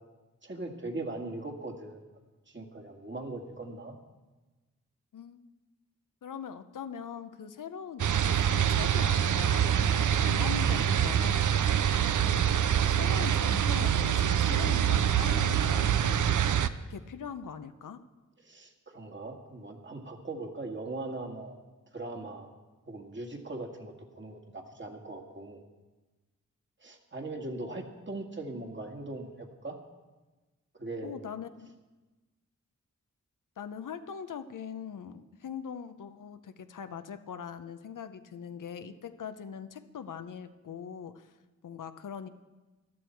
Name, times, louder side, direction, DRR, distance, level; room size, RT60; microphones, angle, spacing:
voice 1, 0.4-2.0 2.5-4.0 12.0-12.2 18.4-21.6 21.9-22.5 22.9-25.6 26.8-29.8 30.7-31.2, right 2 dB, 35° right, 2 dB, 2.1 m, -40 dB
voice 2, 6.2-11.5 12.3-16.5 16.9-18.0 31.0-31.7 33.6-41.3 41.6-42.3, left 7 dB, 85° left, 10 dB, 0.8 m, -41 dB
sound 1, 8.0-16.7, right 9 dB, 75° right, 0.6 m, -25 dB
15.0 x 12.0 x 4.6 m, 1.2 s
cardioid pair, 55°, 31 cm